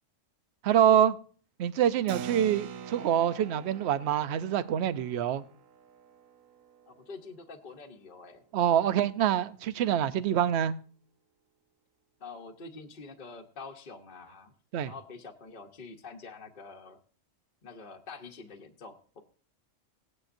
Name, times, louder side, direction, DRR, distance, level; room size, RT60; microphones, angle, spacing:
voice 1, 0.6-1.2 1.6-5.4 8.5-10.7 14.7-14.9, right 10 dB, 60° right, 0.8 m, -25 dB
Keyboard (musical), 2.1-8.1, right 8 dB, 85° right, 1.1 m, -45 dB
voice 2, 6.9-8.4 12.2-14.5 14.8-17.0 17.6-19.2, left 4 dB, 45° left, 1.0 m, -46 dB
17.5 x 9.8 x 2.6 m
omnidirectional pair, 1.4 m